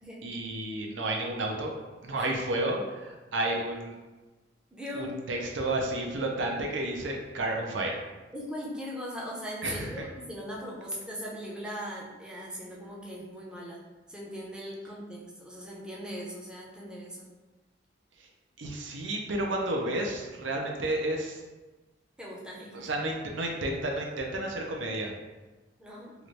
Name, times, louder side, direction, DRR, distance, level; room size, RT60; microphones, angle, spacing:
voice 1, 0.2-1.7 2.0-3.9 4.9-8.0 9.6-10.0 18.6-21.4 22.7-25.1, right 1 dB, 75° right, 1 dB, 0.6 m, -31 dB
voice 2, 4.7-5.4 8.3-13.8 14.1-17.3 22.2-22.9 25.8-26.1, equal, 5° right, -5 dB, 0.6 m, -39 dB
2.9 x 2.5 x 3.1 m, 1.2 s
head